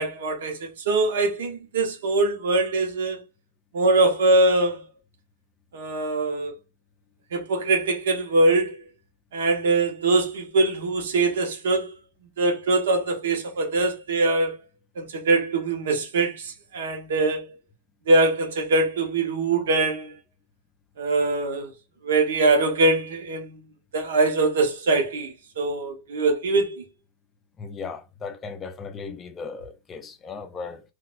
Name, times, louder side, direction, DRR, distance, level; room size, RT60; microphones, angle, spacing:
voice 1, 0.0-3.2 3.7-4.9 5.7-6.5 7.3-8.8 9.3-11.9 12.4-14.6 15.0-17.5 18.1-20.1 21.0-21.7 22.0-23.6 23.9-26.9, right 2 dB, 85° right, 1.0 m, -23 dB
voice 2, 27.6-30.8, left 5 dB, 15° left, 0.4 m, -36 dB
3.9 x 2.4 x 2.4 m
supercardioid pair, 165°, 0 cm